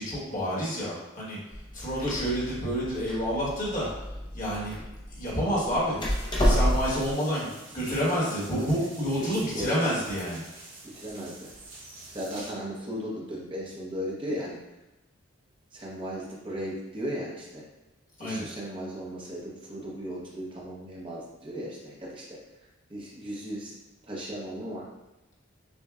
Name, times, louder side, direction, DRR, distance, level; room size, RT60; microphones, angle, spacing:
voice 1, 0.0-1.4 1.7-3.9 4.3-4.8 5.1-6.0 6.4-10.4 18.2-18.4, equal, 40° left, -7 dB, 1.3 m, -29 dB
Door, 1.5-7.1, equal, 25° left, 0.6 m, -29 dB
sound 1, 6.0-12.5, right 2 dB, 70° right, 0.9 m, -47 dB
voice 2, 9.2-10.1 11.0-11.3 12.1-14.6 15.7-17.6 18.2-22.4 22.9-23.7 24.1-24.9, equal, 25° right, -4 dB, 0.8 m, -36 dB
6.3 x 2.2 x 2.4 m, 1.0 s
head